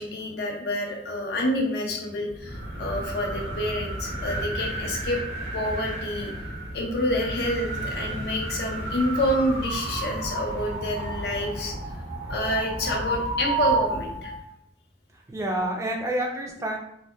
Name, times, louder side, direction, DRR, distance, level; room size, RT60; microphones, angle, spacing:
voice 1, 0.0-5.2 5.5-6.3 6.7-11.7 12.3-14.3, left 1 dB, 65° left, 0 dB, 0.5 m, -28 dB
sound 1, 2.3-14.4, right 2 dB, 85° right, 0.6 m, -31 dB
voice 2, 15.3-16.8, right 1 dB, 15° right, 1 dB, 0.4 m, -30 dB
2.6 x 2.1 x 2.2 m, 0.72 s
head